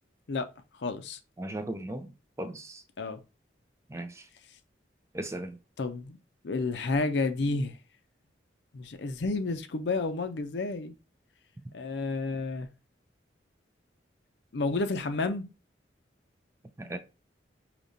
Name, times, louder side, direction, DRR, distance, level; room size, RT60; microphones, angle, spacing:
voice 1, 0.8-1.2 3.0-3.2 5.8-6.2 6.4-7.8 8.7-10.9 11.7-12.7 14.5-15.4, left 3 dB, 70° left, 0.5 m, -30 dB
voice 2, 1.4-2.1 2.4-2.8 3.9-4.2 5.1-5.6 16.8-17.0, right 1 dB, 15° right, 0.4 m, -37 dB
5.0 x 2.9 x 2.7 m
head